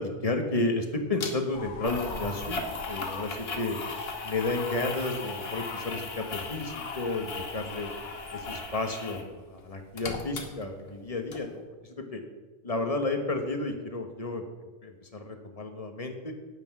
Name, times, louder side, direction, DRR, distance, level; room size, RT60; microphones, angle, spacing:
voice 1, 0.0-2.6 2.8-3.8 4.2-7.9 8.3-12.2 12.6-14.4 14.8-16.3, left 2 dB, 30° left, 5 dB, 1.3 m, -32 dB
sound 1, 1.2-1.3 1.8-9.3 9.6-11.0 11.3-11.4, left 3 dB, 60° left, 1.5 m, -38 dB
sound 2, 1.5-8.6, left 5 dB, 80° left, 1.3 m, -41 dB
9.4 x 8.9 x 6.0 m, 1.3 s
omnidirectional pair, 1.2 m